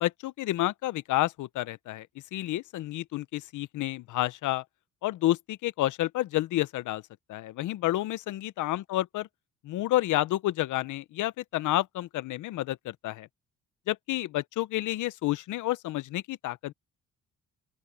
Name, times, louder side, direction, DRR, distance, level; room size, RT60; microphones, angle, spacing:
voice 1, 0.0-4.6 5.0-7.0 7.3-9.3 9.6-13.3 13.9-16.7, left 15 dB, 80° left, 0.8 m, -30 dB
open air
cardioid pair, 90°, 30 cm